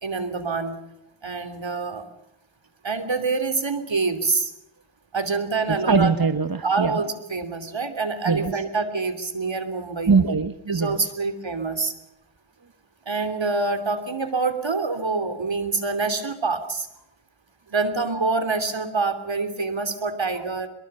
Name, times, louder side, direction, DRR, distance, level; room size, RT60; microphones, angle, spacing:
voice 1, 0.0-0.8 1.2-2.1 2.8-4.5 5.1-6.1 6.6-10.1 10.7-11.9 13.1-16.9 17.7-20.7, right 4 dB, 70° right, 9 dB, 3.2 m, -26 dB
voice 2, 5.7-7.0 8.3-8.5 10.1-11.1, right 4 dB, 45° right, 9 dB, 1.4 m, -22 dB
23.5 x 22.0 x 6.9 m, 0.84 s
wide cardioid pair, 40°, 47 cm